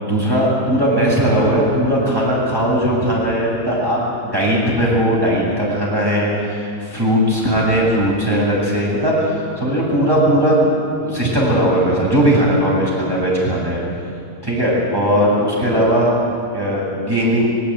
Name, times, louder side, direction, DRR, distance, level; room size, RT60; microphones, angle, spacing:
voice 1, 0.0-10.7 11.0-13.8 14.4-16.1 16.5-17.5, equal, 15° right, -5 dB, 7.9 m, -18 dB
21.5 x 17.5 x 9.3 m, 2.6 s
omnidirectional pair, 1.8 m